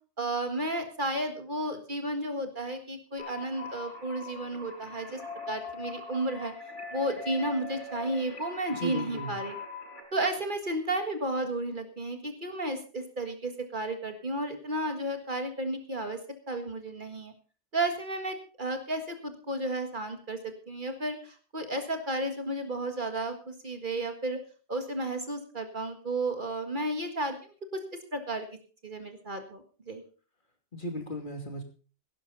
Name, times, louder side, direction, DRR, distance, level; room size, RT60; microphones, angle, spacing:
voice 1, 0.2-5.2 5.5-6.5 6.9-9.5 10.1-16.2 16.5-17.3 17.7-24.4 24.7-27.4 27.7-27.8 28.1-28.5 28.8-30.0, right 1 dB, 45° right, 6 dB, 1.9 m, -33 dB
sound 1, 3.2-10.0, left 4 dB, 90° left, 6.3 m, -41 dB
voice 2, 8.7-9.4 30.7-31.6, equal, 45° left, 4 dB, 2.9 m, -36 dB
17.0 x 11.5 x 4.0 m, 0.37 s
omnidirectional pair, 1.2 m